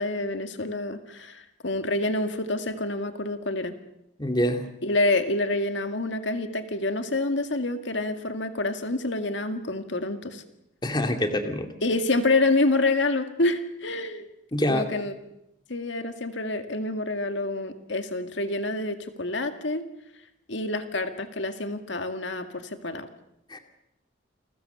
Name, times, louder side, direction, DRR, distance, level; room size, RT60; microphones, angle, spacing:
voice 1, 0.0-3.7 4.8-10.4 11.8-14.3 14.7-15.1 15.7-19.9 20.5-23.1, left 2 dB, 75° left, 7 dB, 2.0 m, -27 dB
voice 2, 4.2-4.6 10.8-11.7 14.5-14.9 23.5-23.6, left 1 dB, 25° left, 5 dB, 2.4 m, -25 dB
29.5 x 22.0 x 7.0 m, 0.82 s
head